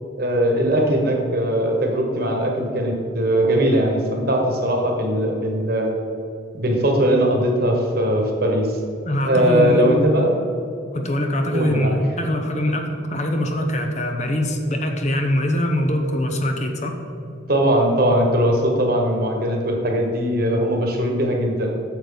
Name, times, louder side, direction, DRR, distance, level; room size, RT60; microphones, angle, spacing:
voice 1, 0.2-5.9 6.5-8.7 9.2-10.4 11.5-12.0 17.5-21.8, right 1 dB, 50° right, 1 dB, 1.4 m, -20 dB
voice 2, 9.0-9.8 10.9-16.9, left 1 dB, 35° left, 4 dB, 0.8 m, -23 dB
9.1 x 7.0 x 4.0 m, 2.6 s
head